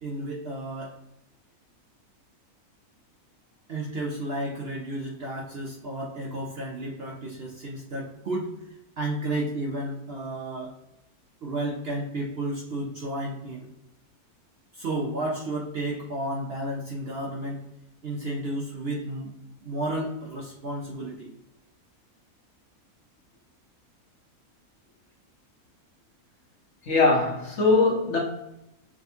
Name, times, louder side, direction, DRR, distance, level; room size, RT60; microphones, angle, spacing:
voice 1, 0.0-1.0 3.7-8.6 9.0-10.8 11.4-13.7 14.7-17.6 18.0-19.3 19.6-21.3, right 1 dB, 55° right, 0.7 m, -32 dB
voice 2, 26.8-28.2, left 3 dB, 55° left, 1.1 m, -21 dB
5.9 x 2.3 x 2.7 m
omnidirectional pair, 1.6 m